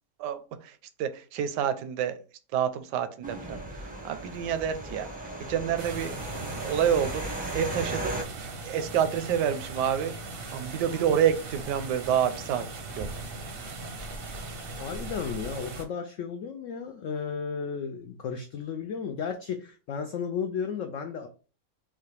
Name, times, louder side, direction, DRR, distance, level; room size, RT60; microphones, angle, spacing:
voice 1, 0.2-2.2 2.5-3.6 4.0-5.1 5.5-6.1 6.6-8.1 8.6-10.1 10.5-12.6 13.0-13.1, right 9 dB, 80° right, 10 dB, 1.2 m, -28 dB
sound 1, 3.2-8.2, right 1 dB, 10° right, 0.4 m, -36 dB
sound 2, 5.8-15.8, right 3 dB, 55° right, 0.6 m, -39 dB
voice 2, 14.8-21.3, left 6 dB, 80° left, 6 dB, 0.7 m, -34 dB
5.6 x 2.2 x 3.2 m, 0.37 s
omnidirectional pair, 1.8 m